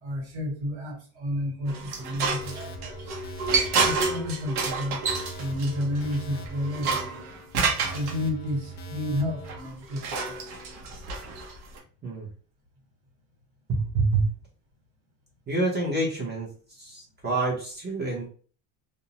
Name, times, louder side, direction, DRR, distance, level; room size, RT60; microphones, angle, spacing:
voice 1, 0.0-3.1 3.8-7.2 7.9-10.4, left 1 dB, 80° right, -1 dB, 1.4 m, -31 dB
sound 1, 1.7-8.1 9.5-11.8, right 4 dB, 65° right, 0.8 m, -29 dB
sound 2, 2.4-9.6, right 3 dB, 30° left, 0.4 m, -42 dB
voice 2, 13.7-14.2 15.5-16.5 16.8-18.2, right 3 dB, 25° right, -3 dB, 0.7 m, -27 dB
2.5 x 2.0 x 2.8 m, 0.41 s
cardioid pair, 150°, 41 cm